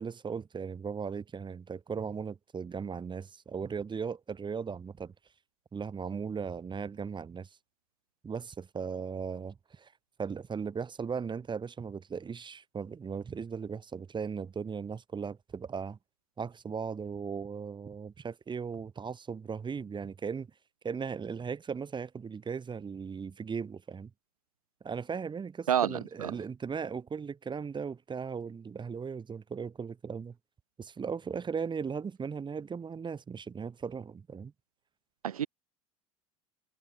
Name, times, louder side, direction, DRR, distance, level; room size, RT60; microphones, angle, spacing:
voice 1, 0.0-5.1 5.7-7.5 8.2-9.9 10.2-16.0 16.4-20.5 20.8-24.1 24.8-30.4 30.8-34.5, right 6 dB, 25° right, 3.5 m, -37 dB
voice 2, 25.7-26.3 35.2-35.5, right 9 dB, 90° right, 0.5 m, -29 dB
hypercardioid pair, 75°, 18 cm